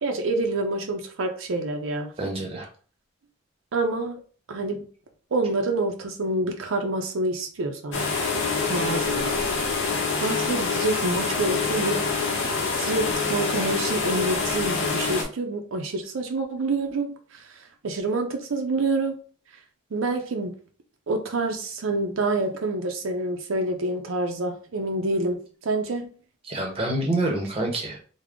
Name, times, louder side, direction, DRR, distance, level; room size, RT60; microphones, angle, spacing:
voice 1, 0.0-2.1 3.7-4.2 4.5-4.9 5.3-8.1 8.7-9.5 9.9-12.1 12.8-19.2 19.9-20.5 21.1-26.1, right 2 dB, 75° right, 4 dB, 0.5 m, -27 dB
voice 2, 2.2-2.7 26.5-28.0, right 2 dB, 25° right, 2 dB, 0.7 m, -27 dB
sound 1, 7.9-15.2, left 4 dB, 60° left, 0.8 m, -26 dB
3.6 x 2.0 x 3.5 m, 0.41 s
head